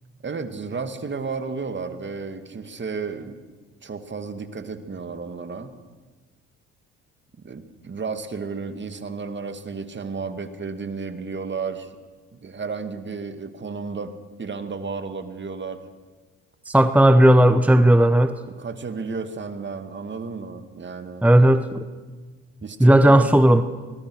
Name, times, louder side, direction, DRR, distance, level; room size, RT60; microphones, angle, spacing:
voice 1, 0.2-3.4 3.8-5.8 7.4-11.9 12.3-14.1 14.4-15.8 18.6-21.3 22.6-23.3, right 5 dB, 35° right, 9 dB, 2.2 m, -32 dB
voice 2, 16.7-18.3 21.2-21.8 22.8-23.6, right 1 dB, 5° right, 10 dB, 1.1 m, -15 dB
24.0 x 20.5 x 6.4 m, 1.3 s
supercardioid pair, 65°, 31 cm